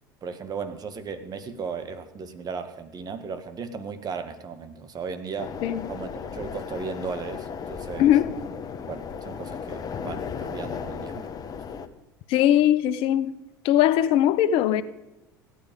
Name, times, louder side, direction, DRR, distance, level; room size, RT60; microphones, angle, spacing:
voice 1, 0.2-5.6 5.9-8.1 8.9-11.3, right 5 dB, 35° right, 1.6 m, -36 dB
sound 1, 5.4-11.9, left 6 dB, 35° left, 1.1 m, -35 dB
voice 2, 8.0-8.3 12.3-13.4 13.6-14.8, left 11 dB, 55° left, 0.7 m, -20 dB
16.5 x 9.6 x 5.3 m
hypercardioid pair, 80°, 11 cm